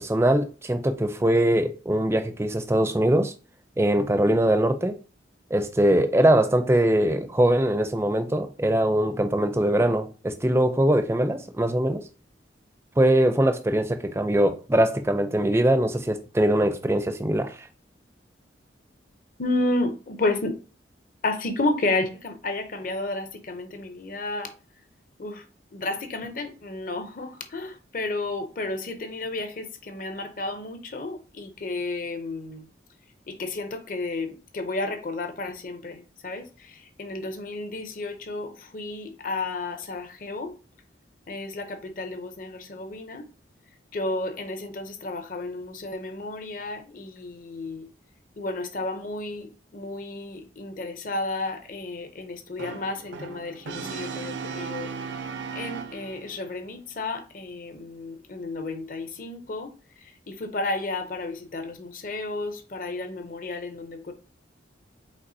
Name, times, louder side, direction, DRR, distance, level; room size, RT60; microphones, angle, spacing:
voice 1, 0.0-3.3 3.8-5.0 5.5-12.0 13.0-17.7, right 1 dB, 15° right, 0.4 m, -22 dB
voice 2, 19.4-20.6 21.2-24.5 25.2-25.4 25.7-32.6 33.3-40.5 41.3-43.3 43.9-47.9 48.4-54.9 55.5-59.7 60.0-64.1, left 2 dB, 45° left, 0.7 m, -32 dB
Brass instrument, 52.6-56.4, right 5 dB, 80° right, 0.6 m, -36 dB
5.2 x 3.6 x 2.7 m
head